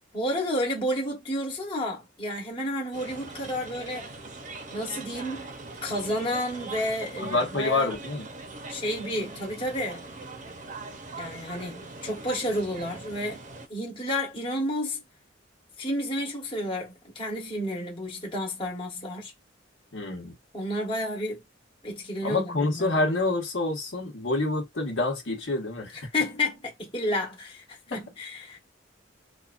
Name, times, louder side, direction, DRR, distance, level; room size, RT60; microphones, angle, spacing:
voice 1, 0.1-4.1 4.7-5.5 5.8-7.9 8.7-10.1 11.2-13.4 13.7-15.0 15.8-19.3 20.5-21.4 21.8-23.1 26.1-28.6, left 1 dB, 30° left, 1.2 m, -31 dB
sound 1, 2.9-13.7, right 3 dB, 40° right, 0.7 m, -41 dB
voice 2, 7.2-8.3 19.9-20.3 22.2-26.0 27.9-28.0, left 2 dB, 75° left, 1.1 m, -27 dB
4.2 x 2.4 x 2.5 m
head